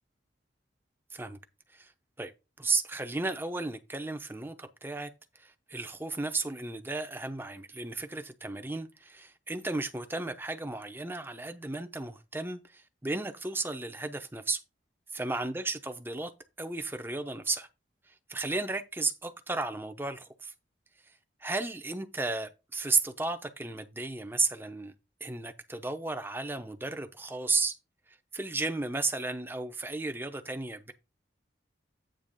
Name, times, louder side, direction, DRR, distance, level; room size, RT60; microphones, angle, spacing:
voice 1, 2.6-5.1 5.3-14.6 15.1-16.3 16.6-17.7 18.3-20.5 21.4-24.9 25.2-27.8 28.1-30.9, right 3 dB, 10° right, 0.7 m, -34 dB
9.0 x 3.1 x 6.4 m
head